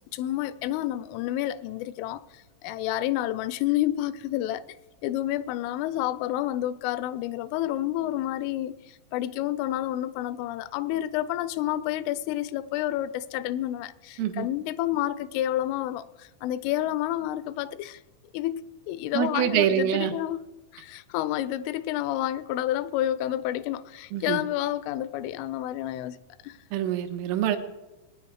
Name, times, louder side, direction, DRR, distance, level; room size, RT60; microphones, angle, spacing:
voice 1, 0.1-4.6 5.0-18.0 18.3-20.4 20.7-26.2 26.4-26.6, left 13 dB, 85° left, 3.0 m, -29 dB
voice 2, 19.1-20.1 24.1-24.4 26.7-27.6, right 10 dB, 90° right, 3.6 m, -25 dB
20.5 x 9.5 x 4.7 m
omnidirectional pair, 5.7 m